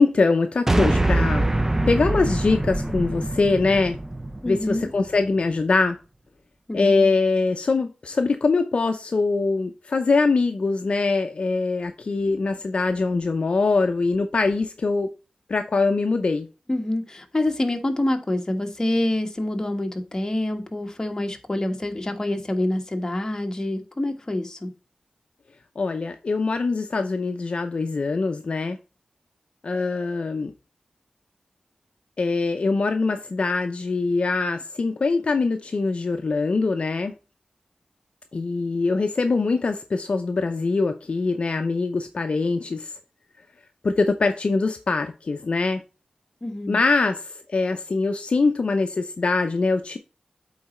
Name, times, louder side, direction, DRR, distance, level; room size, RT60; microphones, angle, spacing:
voice 1, 0.0-1.5 1.9-4.0 4.5-6.0 6.7-15.1 15.5-16.5 25.8-28.8 29.6-30.5 32.2-37.1 38.3-43.0 43.8-45.8 46.7-50.0, left 3 dB, 55° left, 0.6 m, -23 dB
sound 1, 0.7-5.1, right 1 dB, 20° right, 0.5 m, -24 dB
voice 2, 4.4-4.9 6.7-7.1 16.7-24.7 46.4-46.8, left 1 dB, 25° left, 1.3 m, -26 dB
8.5 x 4.0 x 4.3 m
wide cardioid pair, 75°, 2 cm